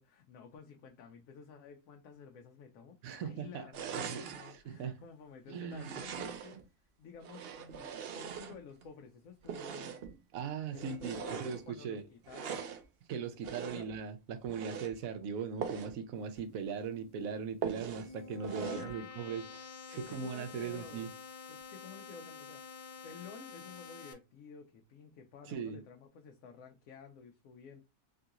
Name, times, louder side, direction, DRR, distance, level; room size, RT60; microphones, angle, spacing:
voice 1, 0.0-6.6 7.0-10.0 10.7-12.7 13.5-13.9 18.0-18.2 18.6-19.1 19.9-21.1 21.5-27.8, left 5 dB, 75° left, 1.0 m, -52 dB
voice 2, 3.0-4.9 5.5-5.8 10.3-12.1 13.1-21.1 25.5-25.8, right 6 dB, 85° right, 1.1 m, -39 dB
sound 1, 3.7-4.5 5.7-6.6 7.2-8.9 9.4-10.2 10.7-11.6 12.2-12.8 13.4-14.0 14.4-14.9 15.6-16.0 16.3-16.4 16.8-16.9 17.6-18.1 18.4-18.9, right 7 dB, 60° right, 0.7 m, -41 dB
sound 2, 17.6-24.1, left 6 dB, 50° left, 0.6 m, -49 dB
3.8 x 2.7 x 2.4 m
omnidirectional pair, 1.4 m